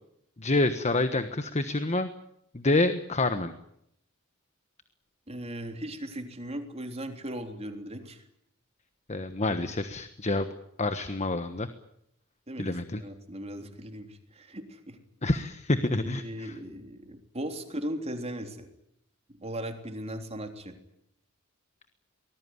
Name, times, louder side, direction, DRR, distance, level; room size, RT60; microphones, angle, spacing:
voice 1, 0.4-2.1 2.5-3.5 9.1-10.4 10.8-11.7 12.6-13.0 15.2-16.5, left 2 dB, 35° left, 10 dB, 1.3 m, -27 dB
voice 2, 5.3-8.2 12.5-15.0 16.0-18.7 19.3-20.8, right 1 dB, 30° right, 5 dB, 3.5 m, -38 dB
24.5 x 20.0 x 9.7 m, 0.76 s
head